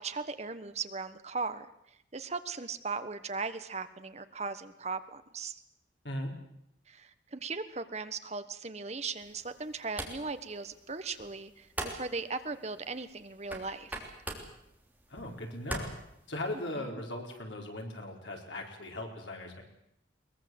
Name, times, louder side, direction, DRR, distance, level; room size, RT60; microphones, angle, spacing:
voice 1, 0.0-1.7 2.1-5.6 6.9-14.0 16.8-17.0, right 4 dB, 35° right, 11 dB, 1.2 m, -38 dB
sound 1, 9.2-16.7, right 1 dB, 10° right, 3.3 m, -44 dB
voice 2, 15.1-15.9 16.3-19.6, left 1 dB, 75° left, 2 dB, 4.6 m, -38 dB
22.0 x 21.0 x 7.8 m, 0.77 s
head